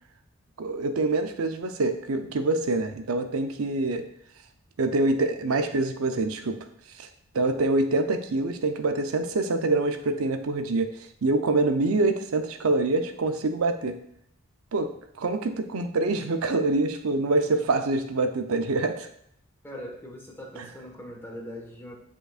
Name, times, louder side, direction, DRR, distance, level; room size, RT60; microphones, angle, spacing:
voice 1, 0.6-4.1 4.8-6.6 7.0-7.1 7.3-10.9 11.2-14.0 14.7-14.9 15.2-19.1, right 2 dB, 85° right, 8 dB, 0.6 m, -25 dB
voice 2, 19.6-21.9, equal, 10° left, -1 dB, 1.4 m, -41 dB
8.8 x 5.3 x 2.4 m, 0.71 s
head